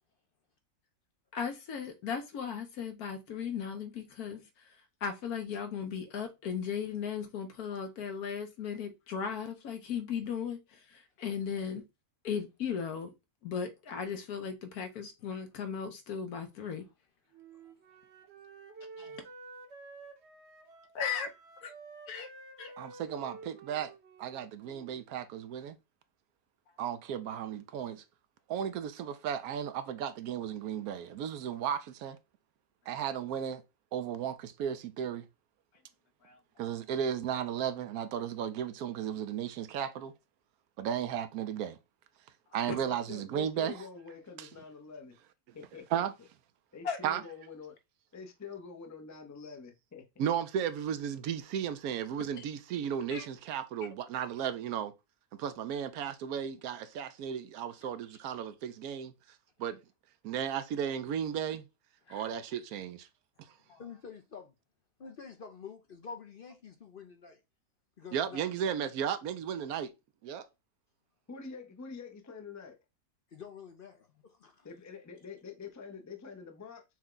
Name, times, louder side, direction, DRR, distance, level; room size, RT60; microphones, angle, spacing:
voice 1, 1.3-4.4 5.0-11.8 12.2-13.1 13.4-16.8 21.0-21.3 21.6-21.7 22.1-22.3 22.6-22.7 36.3-36.4 46.8-47.0 53.1-53.3 63.7-63.8, left 7 dB, 80° left, 1.3 m, -36 dB
Wind instrument woodwind instrument, 17.3-25.1, right 3 dB, 55° right, 1.1 m, -51 dB
voice 2, 22.8-23.9 24.2-25.8 26.8-28.0 28.5-32.2 32.9-33.6 33.9-35.3 36.6-40.1 40.8-41.8 42.5-43.8 44.4-44.5 45.9-46.1 47.0-47.2 50.2-54.9 55.4-59.1 59.6-59.8 60.2-61.7 62.1-63.1 68.1-69.9 70.2-70.5, right 9 dB, 80° right, 1.1 m, -34 dB
voice 3, 42.6-45.1 45.5-46.0 46.7-47.8 48.1-50.1 71.3-72.8 74.6-76.8, left 5 dB, 25° left, 0.4 m, -46 dB
voice 4, 57.7-58.2 62.0-62.3 63.8-64.5 65.0-67.4 68.0-68.5 73.3-74.7, left 5 dB, 50° left, 0.7 m, -48 dB
6.2 x 2.3 x 3.7 m
omnidirectional pair, 1.6 m